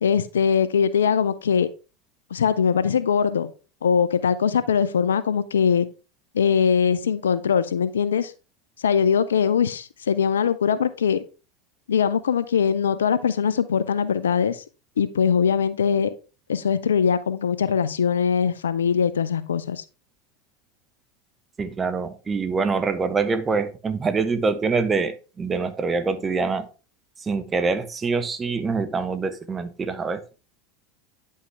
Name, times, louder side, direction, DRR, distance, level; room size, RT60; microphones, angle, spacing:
voice 1, 0.0-1.7 2.3-3.5 3.8-5.9 6.3-8.3 8.8-11.2 11.9-14.6 15.0-16.1 16.5-19.8, left 7 dB, 85° left, 0.6 m, -21 dB
voice 2, 21.6-26.7 27.2-30.2, right 4 dB, 25° right, 0.9 m, -25 dB
9.7 x 5.5 x 3.3 m
hypercardioid pair, 85°, 0 cm